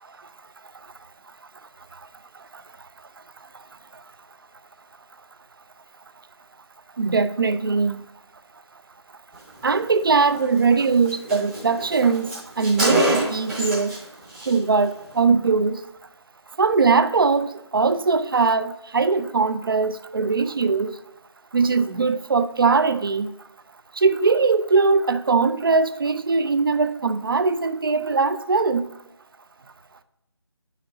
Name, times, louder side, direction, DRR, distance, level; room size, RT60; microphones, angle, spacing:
voice 1, 7.0-8.0 9.6-13.9 14.5-15.8 16.6-20.9 21.5-23.3 24.0-28.9, right 4 dB, 50° right, 0.6 m, -21 dB
Car, 10.4-10.5 10.8-10.9 11.1-14.0 14.3-14.6, right 1 dB, 5° right, 0.7 m, -26 dB
9.8 x 5.8 x 2.7 m
figure-of-eight pair, 160°, 15 cm